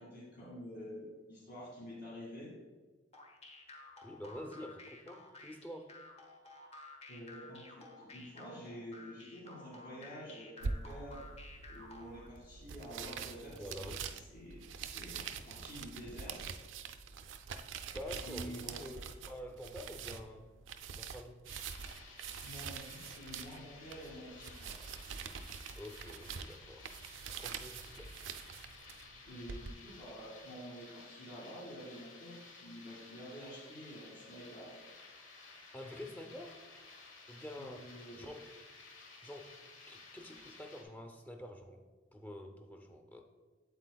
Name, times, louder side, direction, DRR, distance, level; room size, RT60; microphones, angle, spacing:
voice 1, 0.0-2.5 7.1-11.2 11.7-14.0 14.3-16.5 18.2-18.9 22.4-24.9 29.2-34.7 37.6-38.3, equal, 55° left, -7 dB, 1.9 m, -49 dB
sound 1, 3.1-12.3, left 2 dB, 30° left, 1.0 m, -53 dB
voice 2, 4.0-5.9 13.5-14.0 17.9-19.0 19.2-20.5 21.0-21.4 25.8-26.9 27.4-28.1 35.7-36.6 37.3-37.9 38.2-38.5 39.2-39.5 39.9-41.9 42.1-43.2, left 1 dB, 10° left, 5 dB, 0.6 m, -47 dB
sound 2, 10.6-29.7, right 5 dB, 75° right, 0.4 m, -45 dB
sound 3, 21.5-40.8, left 3 dB, 75° left, 1.2 m, -55 dB
8.3 x 7.8 x 2.3 m, 1.3 s
head